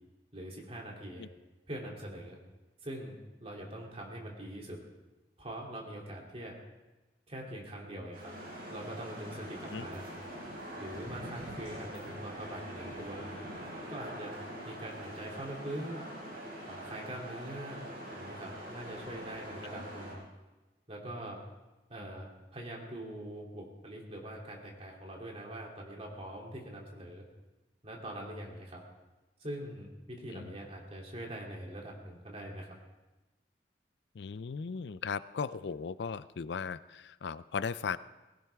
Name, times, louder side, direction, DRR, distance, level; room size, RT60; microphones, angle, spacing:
voice 1, 0.3-1.3 1.7-2.4 2.8-4.8 5.4-6.6 7.3-8.3 8.7-10.0 10.8-13.3 13.9-14.4 14.6-16.0 16.6-17.8 18.2-20.2 20.9-21.4 21.9-27.2 27.8-28.8 29.4-32.7, right 1 dB, 35° right, -1 dB, 2.9 m, -43 dB
sound 1, 8.1-20.1, equal, 55° right, 5.7 m, -44 dB
voice 2, 34.1-38.0, left 5 dB, 75° left, 16 dB, 0.4 m, -37 dB
19.0 x 17.0 x 3.5 m, 1.1 s
head